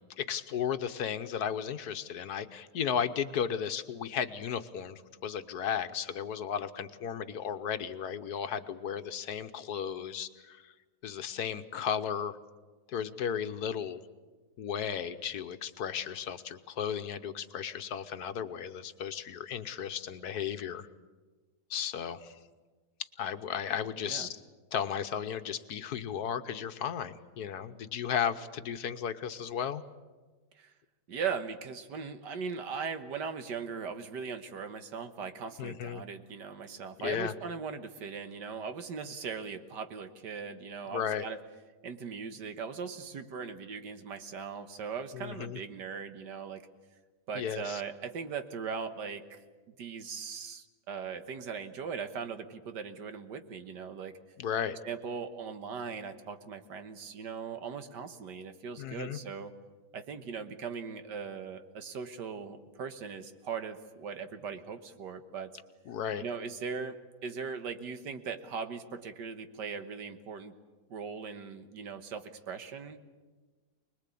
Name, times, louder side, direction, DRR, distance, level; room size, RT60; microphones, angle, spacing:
voice 1, 0.2-10.7 11.0-12.4 12.9-14.0 14.6-20.9 21.7-22.3 23.2-24.4 24.7-29.8 35.6-36.0 37.0-37.3 40.9-41.2 45.1-45.6 47.3-47.8 54.4-54.8 58.8-59.2 65.9-66.2, left 8 dB, 65° left, 10 dB, 1.4 m, -34 dB
voice 2, 24.0-24.3 30.6-30.7 31.1-41.4 41.8-46.7 47.3-49.4 49.7-54.2 54.8-59.6 59.9-65.6 66.2-70.5 70.9-73.0, right 6 dB, 90° right, 9 dB, 1.9 m, -39 dB
25.0 x 20.5 x 8.5 m, 1.3 s
omnidirectional pair, 1.8 m